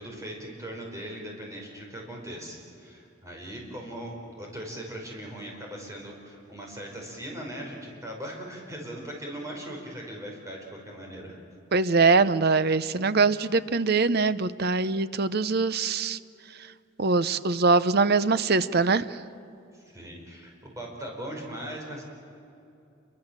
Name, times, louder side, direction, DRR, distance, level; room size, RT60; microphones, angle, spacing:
voice 1, 0.0-11.4 19.7-22.1, right 1 dB, 15° right, 0 dB, 5.2 m, -39 dB
voice 2, 11.7-16.2 17.0-19.2, right 4 dB, 50° right, 15 dB, 0.7 m, -23 dB
28.0 x 23.5 x 7.5 m, 2.7 s
head